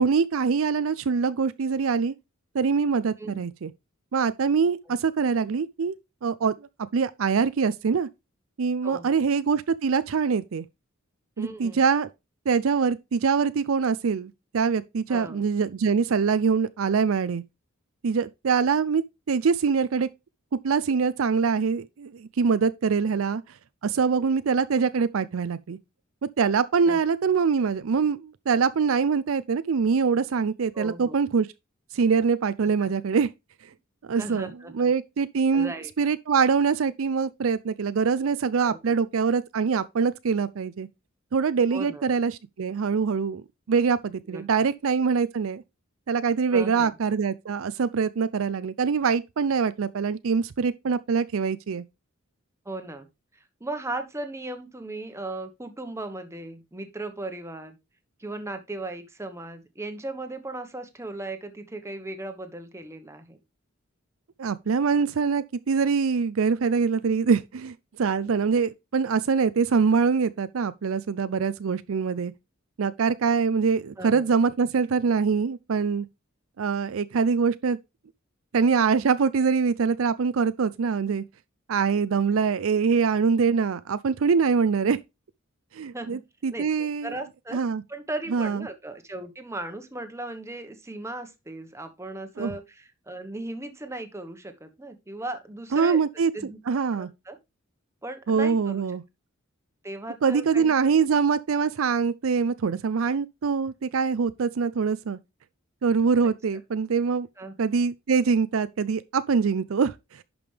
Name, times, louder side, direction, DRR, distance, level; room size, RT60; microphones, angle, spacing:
voice 1, 0.0-2.1 2.5-3.7 4.1-6.0 6.2-6.5 6.9-8.1 8.6-10.6 11.4-12.1 12.5-17.4 18.0-19.0 19.3-20.1 20.6-23.4 23.8-25.8 26.4-31.5 31.9-33.3 34.1-40.9 41.3-45.6 46.1-51.8 64.4-72.3 72.8-76.1 76.6-77.8 78.5-81.2 81.7-85.0 85.7-87.1 87.5-87.8 88.3-88.6 92.4-92.5 95.7-96.3 96.7-97.1 98.3-99.0 100.2-105.2 105.8-107.3 107.6-110.2, right 5 dB, 70° right, 0.5 m, -24 dB
voice 2, 8.8-9.2 11.4-11.8 15.1-15.4 24.2-24.3 26.8-27.0 30.7-31.2 32.8-32.9 34.2-34.9 35.5-35.9 38.6-38.8 41.7-42.1 44.3-44.4 46.5-46.9 52.6-53.1 53.3-57.8 58.2-63.4 74.0-74.3 85.9-86.2 86.5-87.6 87.9-96.0 96.3-96.6 96.9-97.4 98.0-98.8 99.8-101.0 107.4-107.5, right 2 dB, 15° right, 1.2 m, -37 dB
11.0 x 5.2 x 3.3 m
head